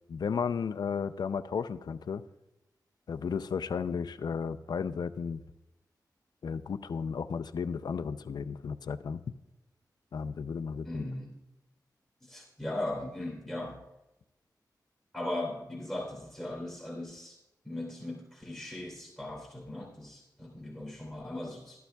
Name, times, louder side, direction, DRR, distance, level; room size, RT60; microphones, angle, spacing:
voice 1, 0.1-2.2 3.1-5.4 6.4-9.2 10.1-11.0, left 6 dB, 70° left, 11 dB, 0.4 m, -34 dB
voice 2, 10.8-11.3 12.2-13.8 15.1-17.4 17.6-21.8, left 1 dB, 5° right, -3 dB, 3.1 m, -38 dB
14.0 x 11.5 x 2.3 m, 0.93 s
wide cardioid pair, 70°, 7 cm